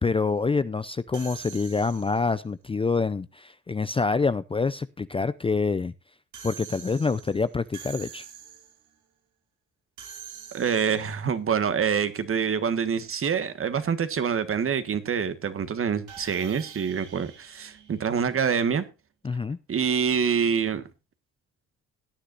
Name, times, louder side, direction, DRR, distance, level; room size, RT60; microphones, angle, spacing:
voice 1, 0.0-5.9 6.4-8.2 19.2-19.6, left 4 dB, 20° left, 0.5 m, -26 dB
sound 1, 1.1-2.4 6.3-8.9 10.0-11.2 16.1-18.6, right 9 dB, 80° right, 2.5 m, -45 dB
voice 2, 10.5-18.8 19.7-20.9, right 7 dB, 45° right, 1.5 m, -26 dB
17.5 x 9.9 x 2.5 m
cardioid pair, 90°, 30 cm